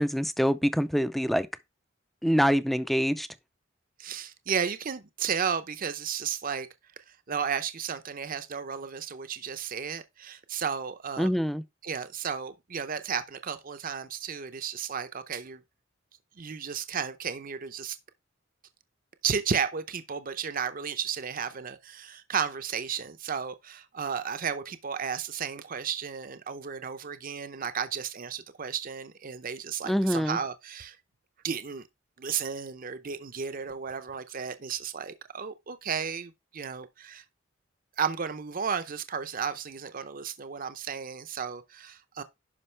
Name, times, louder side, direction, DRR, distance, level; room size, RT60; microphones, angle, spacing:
voice 1, 0.0-1.5 2.2-3.3 11.2-11.6 29.9-30.4, equal, ahead, 0.4 m, -25 dB
voice 2, 4.0-6.7 7.1-11.3 11.8-15.6 16.4-18.0 19.2-31.0 31.4-31.8 32.2-37.2 38.0-42.2, right 7 dB, 45° right, 0.6 m, -33 dB
11.0 x 5.2 x 3.3 m
head